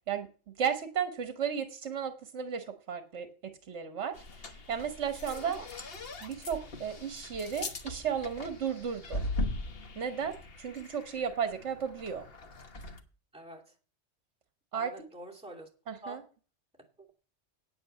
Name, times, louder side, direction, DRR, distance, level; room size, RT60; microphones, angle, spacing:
voice 1, 0.6-3.3 3.7-4.1 4.7-5.6 6.2-9.2 10.0-12.2 14.7-14.9 15.9-16.2, right 7 dB, 65° right, 1.4 m, -34 dB
sound 1, 4.1-13.0, left 2 dB, 50° left, 1.3 m, -40 dB
voice 2, 13.3-13.7 14.8-15.7 16.0-16.2 17.0-17.1, right 1 dB, 5° right, 2.6 m, -46 dB
8.9 x 8.8 x 6.7 m
omnidirectional pair, 1.3 m